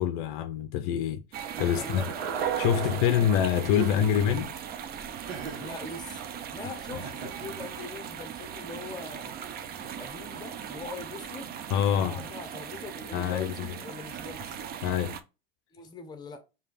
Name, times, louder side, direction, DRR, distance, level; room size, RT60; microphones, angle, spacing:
voice 1, 0.0-2.0 2.6-4.5 11.7-12.2 13.1-13.5 14.8-15.2, left 9 dB, 55° left, 0.5 m, -26 dB
sound 1, 1.3-15.2, right 8 dB, 30° right, 0.5 m, -39 dB
sound 2, 1.6-4.7, right 8 dB, 65° right, 0.9 m, -35 dB
Laughter, 1.6-2.6 3.7-4.4 5.3-5.8 6.9-7.7, right 4 dB, 85° right, 1.4 m, -40 dB
voice 2, 1.7-2.1 2.7-3.0 5.6-6.2 6.5-9.3 9.8-11.6 12.0-14.5 15.7-16.4, left 4 dB, 15° left, 0.9 m, -42 dB
4.9 x 2.8 x 2.5 m
hypercardioid pair, 95°, 30 cm